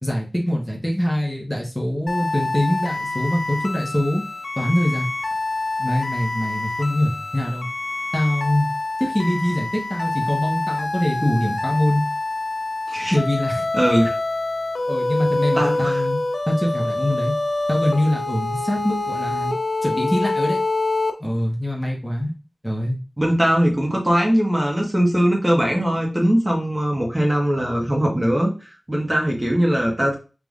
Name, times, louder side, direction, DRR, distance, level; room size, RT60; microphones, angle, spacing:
voice 1, 0.0-4.2 4.6-5.1 5.8-7.7 8.1-8.7 9.0-12.1 13.1-13.7 14.9-16.2 16.5-17.3 17.7-19.5 19.8-20.6 21.2-22.3 22.6-23.0, left 1 dB, 5° left, -2 dB, 1.2 m, -23 dB
sound 1, 2.1-21.1, left 2 dB, 80° left, 0.7 m, -26 dB
voice 2, 12.9-13.2 13.7-14.2 15.6-16.0 23.2-30.2, equal, 20° right, -1 dB, 1.3 m, -20 dB
4.8 x 3.5 x 2.4 m, 0.33 s
wide cardioid pair, 75°, 0 cm